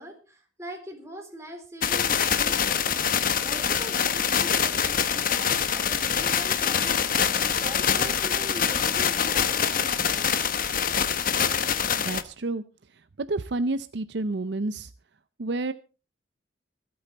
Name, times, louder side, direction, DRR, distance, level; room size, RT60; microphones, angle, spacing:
voice 1, 0.0-10.6, equal, 15° right, 3 dB, 3.8 m, -42 dB
sound 1, 1.8-12.2, left 7 dB, 45° left, 1.0 m, -25 dB
voice 2, 12.0-12.6 13.2-14.9 15.4-15.7, right 2 dB, 60° right, 13 dB, 0.6 m, -29 dB
25.5 x 8.7 x 4.1 m, 0.34 s
head